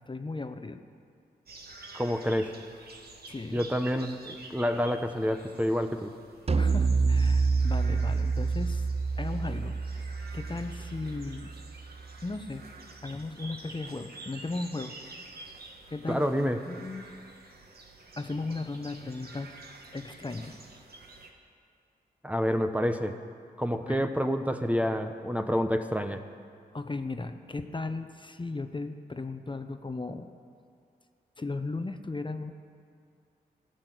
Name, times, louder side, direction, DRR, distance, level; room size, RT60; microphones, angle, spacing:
voice 1, 0.1-0.8 3.3-3.6 6.6-8.8 9.2-11.5 12.2-12.6 13.0-14.9 15.9-16.3 16.6-17.1 18.2-19.6 19.9-20.6 23.9-24.0 26.7-30.3 31.4-32.5, left 3 dB, 25° left, 8 dB, 0.9 m, -36 dB
sound 1, 1.5-21.3, right 3 dB, 60° right, 1.8 m, -49 dB
voice 2, 1.9-2.5 3.5-6.1 16.1-16.6 22.2-23.2 23.6-26.2, equal, 10° right, 7 dB, 0.9 m, -28 dB
sound 2, 6.5-11.9, right 4 dB, 35° right, 0.6 m, -27 dB
13.5 x 6.5 x 9.3 m, 2.3 s
supercardioid pair, 40°, 18 cm